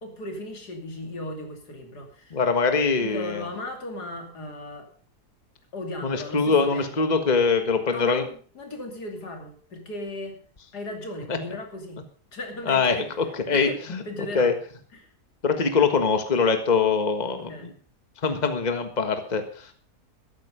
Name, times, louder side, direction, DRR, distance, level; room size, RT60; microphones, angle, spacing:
voice 1, 0.0-2.4 3.0-4.9 5.7-7.1 7.9-10.4 10.7-12.0 12.3-13.2 13.5-14.5 14.9-15.1 17.2-17.7, left 1 dB, 80° left, 3 dB, 3.3 m, -37 dB
voice 2, 2.3-3.4 6.0-8.2 12.7-12.9 13.5-14.0 14.3-14.5 15.4-17.7 18.2-19.7, left 5 dB, 30° left, 7 dB, 1.5 m, -23 dB
13.5 x 12.0 x 4.9 m, 0.44 s
omnidirectional pair, 1.7 m